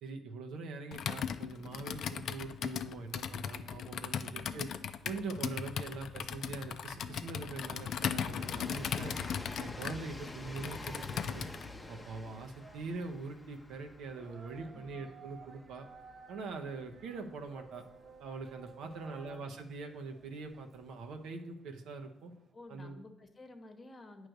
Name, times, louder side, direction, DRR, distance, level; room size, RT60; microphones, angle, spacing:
voice 1, 0.0-4.7 5.0-9.2 9.6-11.5 11.9-15.9 16.3-17.8 18.2-22.3 22.7-23.0, right 4 dB, 85° right, 4 dB, 0.8 m, -43 dB
Computer keyboard, 0.9-11.7, left 8 dB, 65° left, 0.4 m, -38 dB
voice 2, 4.1-4.6 14.7-15.0 18.8-19.5 22.5-24.3, left 2 dB, 30° left, 6 dB, 1.0 m, -53 dB
Train, 4.1-19.2 20.2-20.3, left 2 dB, 15° left, 0.7 m, -49 dB
sound 1, 11.6-22.5, right 5 dB, 50° right, 0.6 m, -57 dB
8.9 x 3.2 x 6.4 m, 0.84 s
cardioid pair, 90°, 0 cm